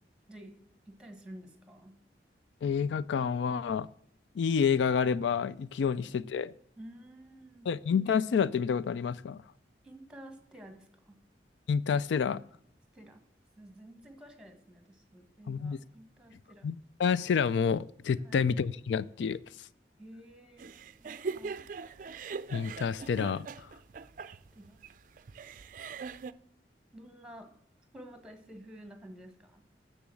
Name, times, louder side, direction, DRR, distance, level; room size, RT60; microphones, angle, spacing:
voice 1, 0.9-1.9 6.0-6.3 6.8-7.7 9.8-11.2 12.9-13.2 13.6-16.7 18.2-18.4 20.0-20.7 21.0-21.7 24.5-24.8 26.9-27.5 27.9-29.6, right 1 dB, 5° right, 6 dB, 1.4 m, -51 dB
voice 2, 2.6-3.9 4.4-6.5 7.7-9.4 11.7-12.4 15.5-15.8 16.6-19.4 22.5-23.7, left 6 dB, 85° left, 17 dB, 0.3 m, -29 dB
sound 1, 20.6-26.3, right 4 dB, 45° right, 0.4 m, -41 dB
7.0 x 7.0 x 7.6 m, 0.68 s
head